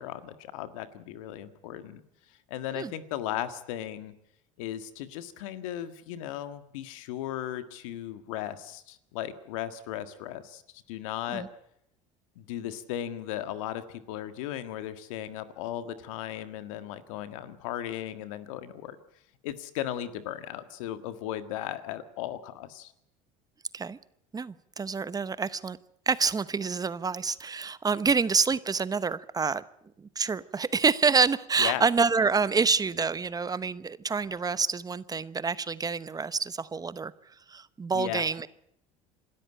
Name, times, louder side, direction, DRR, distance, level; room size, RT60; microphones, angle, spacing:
voice 1, 0.0-2.0 2.5-4.1 4.6-10.6 10.9-11.4 12.4-19.0 19.4-22.9 31.6-31.8 37.9-38.2, left 12 dB, 85° left, 11 dB, 1.7 m, -36 dB
voice 2, 24.3-25.8 26.1-29.6 30.0-37.1 37.5-38.5, right 5 dB, 20° right, 16 dB, 0.9 m, -27 dB
26.5 x 13.0 x 9.0 m, 0.75 s
supercardioid pair, 90°, 17 cm